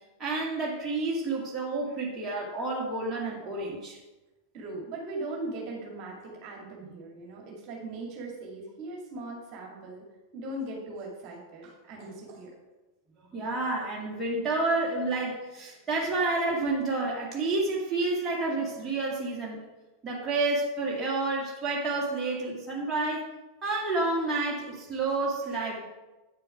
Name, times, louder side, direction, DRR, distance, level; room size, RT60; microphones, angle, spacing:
voice 1, 0.2-4.0 13.3-19.6 20.0-23.3 23.6-25.8, right 3 dB, 15° right, -4 dB, 2.1 m, -29 dB
voice 2, 4.5-10.0 10.3-12.5, right 2 dB, 40° right, -1 dB, 2.2 m, -39 dB
8.6 x 6.7 x 4.8 m, 1.1 s
figure-of-eight pair, 90°, 0 cm